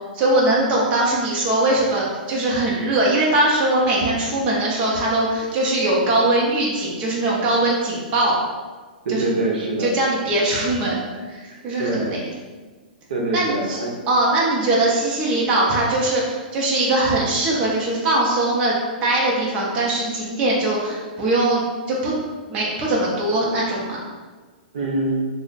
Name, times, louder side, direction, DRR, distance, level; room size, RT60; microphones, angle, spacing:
voice 1, 0.1-8.4 9.1-9.3 9.8-12.2 13.3-13.8 14.1-22.2 22.5-24.0, right 2 dB, 25° right, -5 dB, 0.6 m, -21 dB
voice 2, 9.0-10.0 11.5-12.2 13.1-13.9 24.7-25.3, right 2 dB, 70° right, -1 dB, 0.8 m, -24 dB
3.3 x 2.1 x 3.9 m, 1.4 s
hypercardioid pair, 160°, 5 cm